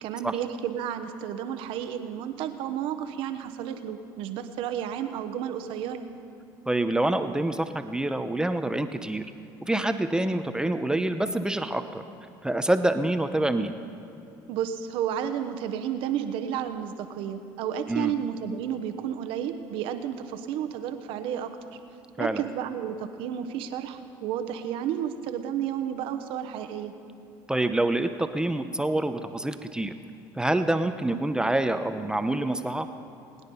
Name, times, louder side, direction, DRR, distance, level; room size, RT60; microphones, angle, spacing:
voice 1, 0.0-6.1 14.5-21.6 22.2-26.9, right 9 dB, 75° right, 8 dB, 1.0 m, -32 dB
voice 2, 6.7-9.3 9.6-12.0 12.4-13.8 17.9-18.1 22.2-22.4 27.5-29.9 30.4-32.9, right 1 dB, 10° right, 8 dB, 0.8 m, -26 dB
21.5 x 9.9 x 5.5 m, 2.7 s
supercardioid pair, 80°, 9 cm